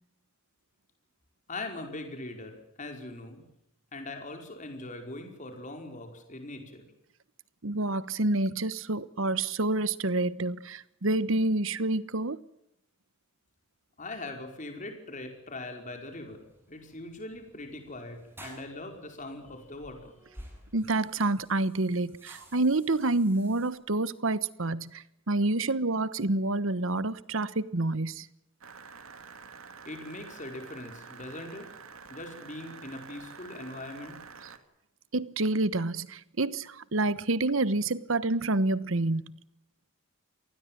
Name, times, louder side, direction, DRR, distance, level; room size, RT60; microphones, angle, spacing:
voice 1, 1.5-3.4 3.9-6.8 14.0-16.4 16.7-20.1 29.8-31.7 32.1-34.2, left 2 dB, 35° left, 5.1 m, -41 dB
voice 2, 7.6-12.4 20.7-28.3 35.1-39.4, right 2 dB, 70° right, 1.2 m, -28 dB
sound 1, 15.5-23.7, right 1 dB, 10° right, 8.0 m, -53 dB
sound 2, 28.6-34.6, right 5 dB, 85° right, 2.6 m, -48 dB
27.0 x 20.0 x 7.6 m
head